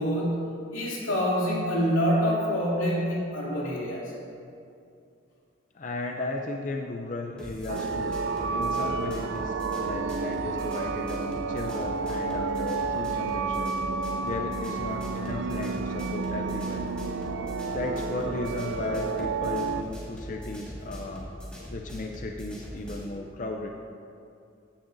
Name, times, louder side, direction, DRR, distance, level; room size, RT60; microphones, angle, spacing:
voice 1, 0.0-4.1, equal, 90° left, -5 dB, 2.7 m, -26 dB
voice 2, 5.7-8.2 8.5-16.9 17.1-17.2 17.7-21.3 21.7-23.7, left 2 dB, 40° left, 2 dB, 0.5 m, -35 dB
sound 1, 7.4-23.1, equal, 5° left, 1.7 m, -41 dB
sound 2, 7.7-19.8, right 4 dB, 70° right, 0.4 m, -31 dB
15.0 x 10.0 x 2.6 m, 2.5 s
head